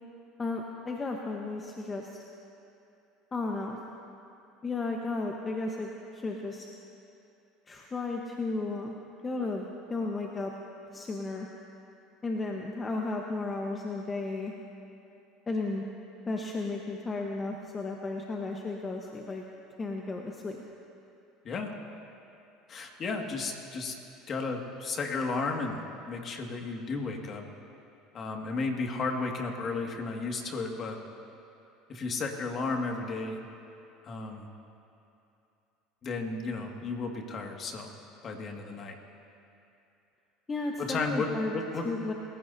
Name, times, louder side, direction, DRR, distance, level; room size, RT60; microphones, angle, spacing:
voice 1, 0.4-2.2 3.3-3.8 4.6-6.7 7.7-9.0 9.2-10.5 10.9-11.5 12.2-14.5 15.5-15.8 16.3-19.4 19.8-20.6 40.5-41.5 41.8-42.1, left 3 dB, 25° left, 0 dB, 1.3 m, -34 dB
voice 2, 22.7-23.9 24.3-25.8 26.1-27.5 28.1-31.0 31.9-33.4 34.0-34.5 36.0-37.9 38.2-38.9 40.8-41.3 41.5-41.9, left 3 dB, 40° left, 2 dB, 2.2 m, -33 dB
28.5 x 15.5 x 2.8 m, 2.8 s
supercardioid pair, 90°, 0 cm